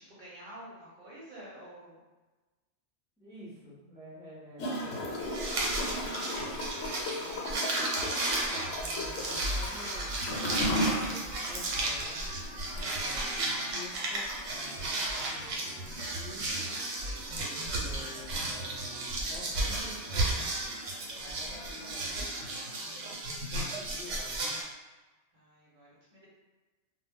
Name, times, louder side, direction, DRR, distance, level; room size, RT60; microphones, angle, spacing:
voice 1, 0.0-2.0 6.3-6.6 7.5-7.6 8.0-8.7 20.9-21.3 25.3-26.3, right 1 dB, 50° right, -7 dB, 0.8 m, -50 dB
voice 2, 3.2-7.8 8.5-10.2 10.6-12.2 12.9-16.4 17.8-20.4 21.2-22.2 23.5-24.5, left 1 dB, 5° right, -8 dB, 0.5 m, -50 dB
Gurgling / Toilet flush, 4.6-23.1, left 1 dB, 90° left, 1.0 m, -39 dB
sound 1, 5.2-24.6, right 2 dB, 85° right, 1.0 m, -34 dB
sound 2, 7.7-22.5, equal, 50° left, 0.6 m, -52 dB
2.1 x 2.0 x 3.5 m, 1.2 s
omnidirectional pair, 1.2 m